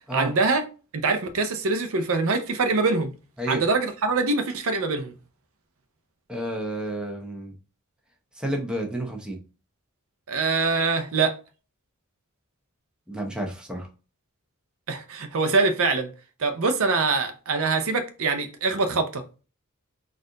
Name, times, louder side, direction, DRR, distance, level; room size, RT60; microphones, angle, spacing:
voice 1, 0.1-0.6 0.9-3.1 3.5-5.1 10.3-11.3 14.9-16.1 16.4-19.2, right 3 dB, 65° right, 0.6 m, -24 dB
voice 2, 6.3-7.5 8.4-9.4 13.1-13.9, right 1 dB, 5° right, 0.8 m, -30 dB
4.2 x 2.5 x 3.7 m
head